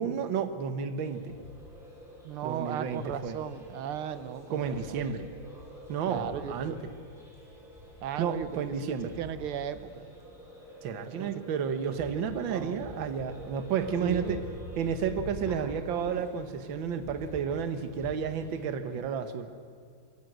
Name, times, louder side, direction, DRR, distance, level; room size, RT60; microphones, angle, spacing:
voice 1, 0.0-1.3 2.4-3.4 4.5-5.3 5.9-6.7 8.2-9.2 10.8-14.4 14.8-19.5, right 7 dB, 65° right, 10 dB, 1.9 m, -31 dB
sound 1, 1.0-18.7, equal, ahead, 5.8 m, -46 dB
voice 2, 2.2-5.2 6.1-6.8 8.0-10.1 11.1-11.3 12.5-12.8 14.0-14.4, right 9 dB, 80° right, 13 dB, 1.8 m, -36 dB
22.0 x 17.0 x 7.9 m, 2.4 s
omnidirectional pair, 2.4 m